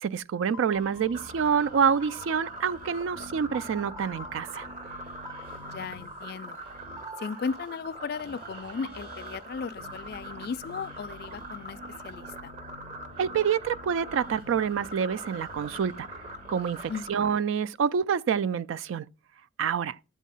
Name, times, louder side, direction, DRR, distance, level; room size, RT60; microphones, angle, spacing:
voice 1, 0.0-4.7 13.2-16.1 16.5-19.1 19.6-20.0, right 7 dB, 80° right, 0.3 m, -27 dB
sound 1, 0.5-7.4, right 1 dB, 15° right, 0.5 m, -48 dB
sound 2, 0.7-17.0, left 1 dB, 55° right, 3.4 m, -49 dB
sound 3, 1.1-17.3, right 1 dB, 35° right, 0.8 m, -43 dB
voice 2, 5.7-6.6 7.2-11.8 12.0-12.5 16.9-17.3, left 5 dB, 50° left, 0.3 m, -36 dB
8.3 x 3.6 x 5.4 m
head